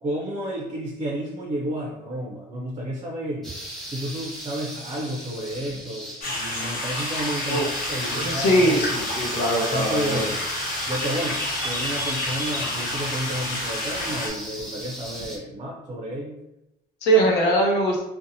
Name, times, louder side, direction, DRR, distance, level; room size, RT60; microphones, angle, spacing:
voice 1, 0.0-3.4 3.8-9.1 9.7-10.4 10.9-16.4, right 1 dB, 30° right, 0 dB, 0.4 m, -31 dB
sound 1, 3.4-15.4, right 1 dB, ahead, 0.8 m, -37 dB
sound 2, 6.2-14.3, left 1 dB, 55° left, 0.9 m, -29 dB
voice 2, 8.1-10.3 17.0-18.0, right 1 dB, 85° left, 0 dB, 0.7 m, -21 dB
2.6 x 2.1 x 2.6 m, 0.90 s
cardioid pair, 110°, 17 cm